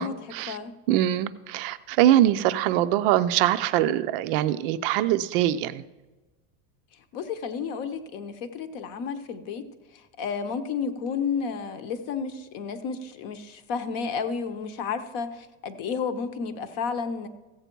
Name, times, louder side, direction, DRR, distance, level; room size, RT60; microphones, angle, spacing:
voice 1, 0.0-0.6 0.9-5.8, right 12 dB, 45° right, 13 dB, 0.4 m, -23 dB
voice 2, 7.1-9.6 9.9-17.3, left 5 dB, 45° left, 10 dB, 0.8 m, -31 dB
15.0 x 8.0 x 4.5 m, 1.1 s
cardioid pair, 180°, 39 cm